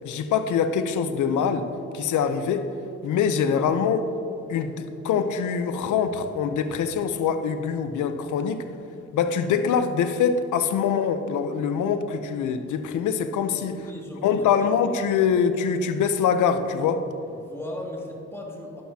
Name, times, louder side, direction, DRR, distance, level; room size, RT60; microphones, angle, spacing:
voice 1, 0.0-1.7 1.9-2.7 3.0-4.1 4.5-8.6 9.1-13.9 14.2-17.1, left 7 dB, 75° left, 9 dB, 0.8 m, -24 dB
voice 2, 13.5-14.3 14.8-14.9 17.3-18.8, left 1 dB, 10° left, -3 dB, 2.3 m, -37 dB
11.5 x 11.5 x 2.9 m, 2.8 s
cardioid pair, 90°, 30 cm